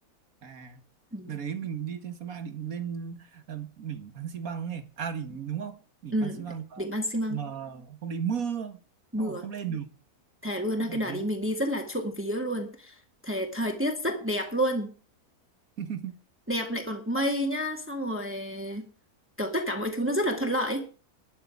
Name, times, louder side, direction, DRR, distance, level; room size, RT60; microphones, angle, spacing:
voice 1, 0.4-0.8 1.3-6.8 7.3-8.8 9.2-9.9 10.9-11.3 15.8-16.2, right 7 dB, 65° right, 2.1 m, -35 dB
voice 2, 6.1-6.4 6.8-7.4 9.1-9.5 10.4-13.0 13.2-14.9 16.5-18.8 19.4-20.8, equal, 10° right, 2.1 m, -29 dB
12.0 x 6.9 x 9.3 m
omnidirectional pair, 1.6 m